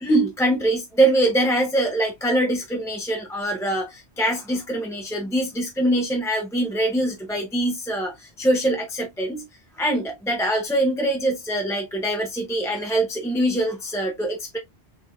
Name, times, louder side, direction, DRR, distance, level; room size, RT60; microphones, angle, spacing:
voice 1, 0.0-9.4 9.8-14.6, right 1 dB, 5° left, 0.5 m, -23 dB
4.1 x 3.2 x 2.3 m
omnidirectional pair, 1.1 m